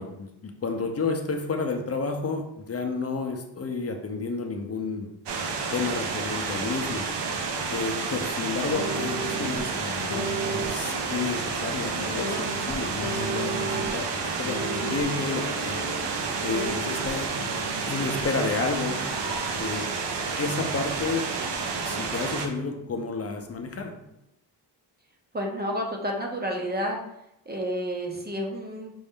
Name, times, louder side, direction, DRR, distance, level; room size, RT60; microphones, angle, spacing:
voice 1, 0.0-5.1 5.7-7.1 7.7-15.8 16.4-17.3 17.9-19.0 19.5-19.9 20.4-21.3 21.8-23.9, left 4 dB, 35° left, 4 dB, 0.6 m, -31 dB
sound 1, 5.3-22.5, right 4 dB, 75° right, 0.7 m, -30 dB
sound 2, 8.7-9.6 10.1-14.1 14.4-18.2 18.8-20.4 20.9-21.5 21.8-24.1, right 1 dB, 65° left, 0.9 m, -36 dB
voice 2, 25.3-27.0 27.5-28.9, equal, 25° right, 0 dB, 0.6 m, -30 dB
5.3 x 2.5 x 3.6 m, 0.83 s
wide cardioid pair, 145°, 42 cm